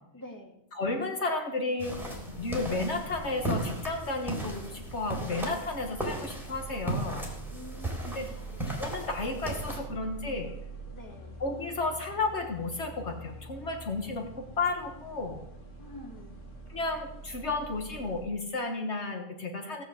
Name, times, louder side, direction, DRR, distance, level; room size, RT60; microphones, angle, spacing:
voice 1, 0.1-0.6 7.5-8.5 10.9-11.4 15.8-16.5, left 1 dB, 15° left, 1 dB, 2.1 m, -47 dB
voice 2, 0.7-2.0 2.4-7.3 8.0-8.3 8.7-10.5 11.4-15.4 16.7-19.8, left 3 dB, 65° left, 3 dB, 1.7 m, -33 dB
sound 1, 1.8-18.3, right 2 dB, 85° left, 2.4 m, -45 dB
sound 2, 1.8-9.8, right 1 dB, ahead, 3.8 m, -36 dB
17.0 x 6.5 x 7.9 m, 0.81 s
omnidirectional pair, 1.3 m